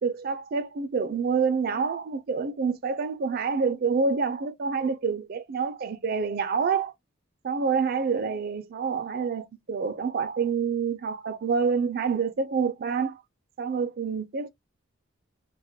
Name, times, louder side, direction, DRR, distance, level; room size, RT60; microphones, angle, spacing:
voice 1, 0.0-6.9 7.4-13.2 13.6-14.5, right 5 dB, 50° right, 0.4 m, -27 dB
2.3 x 2.1 x 2.6 m
head